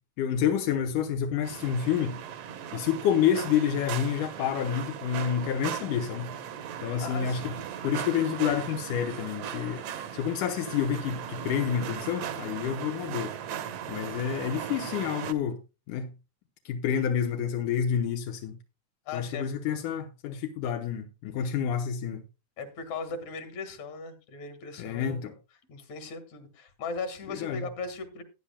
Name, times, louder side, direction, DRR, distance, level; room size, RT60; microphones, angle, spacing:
voice 1, 0.2-2.2 2.7-6.3 6.8-7.5 7.8-13.3 13.9-15.6 15.9-16.1 16.7-18.6 19.1-22.2 24.8-25.3 27.3-27.7, left 8 dB, 90° left, 2.5 m, -28 dB
sound 1, 1.4-15.3, right 9 dB, 65° right, 1.8 m, -38 dB
voice 2, 7.0-7.6 19.1-19.5 22.6-25.2 25.7-28.2, left 4 dB, 65° left, 3.0 m, -38 dB
18.0 x 9.9 x 2.2 m
omnidirectional pair, 3.5 m